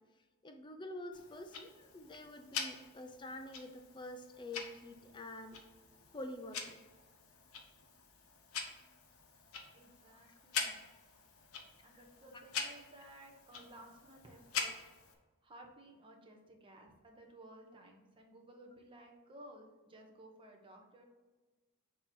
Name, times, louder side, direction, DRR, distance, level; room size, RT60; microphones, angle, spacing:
voice 1, 0.4-5.6 6.1-6.8 10.1-10.3 10.9-11.0 11.9-12.0, left 1 dB, 20° left, 6 dB, 0.5 m, -47 dB
Tick-tock, 1.1-15.1, left 5 dB, 70° left, 0.9 m, -45 dB
voice 2, 9.7-10.8 11.8-14.7 15.4-21.0, right 1 dB, 25° right, 0 dB, 1.0 m, -56 dB
6.5 x 3.0 x 5.4 m, 1.3 s
head